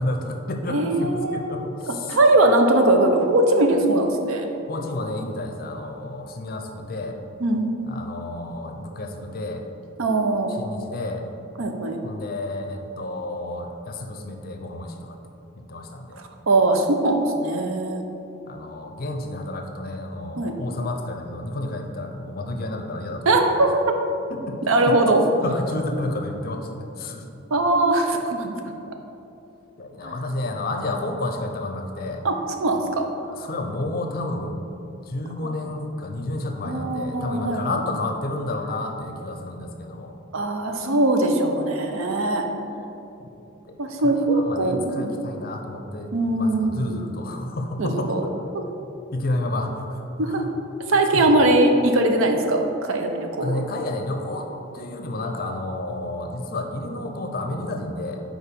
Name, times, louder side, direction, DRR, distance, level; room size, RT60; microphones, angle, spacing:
voice 1, 0.0-2.2 4.7-7.2 7.9-9.6 10.5-11.3 12.0-15.2 15.7-16.2 18.5-23.7 24.3-24.6 24.9-25.0 25.4-27.2 29.8-32.2 33.4-34.6 35.1-40.1 43.7-48.3 49.1-50.5 51.1-51.2 53.4-54.5 54.7-58.2, left 2 dB, 45° left, 4 dB, 0.5 m, -30 dB
voice 2, 0.7-4.5 7.4-7.7 10.0-10.5 11.6-12.0 16.5-18.0 20.4-20.5 23.3-23.7 24.7-25.2 27.5-28.5 30.0-30.1 32.2-33.1 35.4-35.5 36.6-37.8 40.3-42.5 43.8-45.2 46.1-47.0 47.8-48.2 48.5-48.6 50.2-50.4 50.9-53.6, right 2 dB, 70° right, 4 dB, 0.6 m, -21 dB
4.7 x 4.5 x 5.1 m, 2.8 s
head